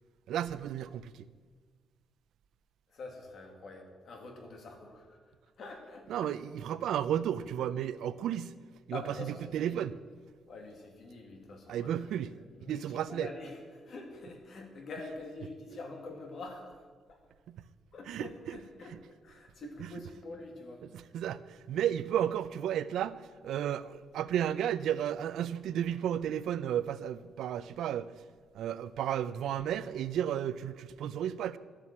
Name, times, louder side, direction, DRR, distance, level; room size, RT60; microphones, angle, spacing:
voice 1, 0.3-1.3 6.1-8.5 8.9-10.0 11.7-12.3 12.6-13.3 17.5-17.7 18.1-18.6 18.9-19.0 19.8-19.9 20.8-28.2 28.5-31.6, right 10 dB, 75° right, 0.5 m, -33 dB
voice 2, 2.9-5.2 5.6-6.3 8.9-9.8 10.5-11.9 12.5-12.8 13.1-13.6 13.9-16.8 17.9-18.9 19.2-20.8, left 3 dB, 45° left, 2.0 m, -45 dB
11.5 x 8.3 x 7.4 m
cardioid pair, 180°, 0 cm